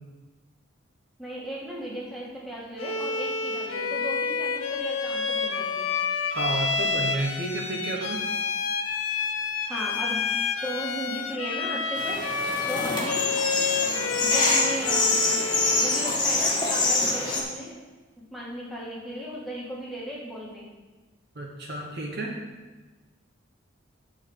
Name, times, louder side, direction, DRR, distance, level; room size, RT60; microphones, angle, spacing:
voice 1, 1.2-5.9 9.7-10.2 10.6-12.2 12.7-13.3 13.8-15.2 15.7-17.7 18.3-20.7, equal, ahead, -6 dB, 1.9 m, -36 dB
Bowed string instrument, 2.8-16.2, left 5 dB, 80° left, 0.8 m, -29 dB
voice 2, 6.3-8.2 21.3-22.3, right 2 dB, 50° right, -1 dB, 1.1 m, -31 dB
sound 1, 12.0-17.4, left 2 dB, 20° left, 1.5 m, -25 dB
9.6 x 4.2 x 7.3 m, 1.2 s
head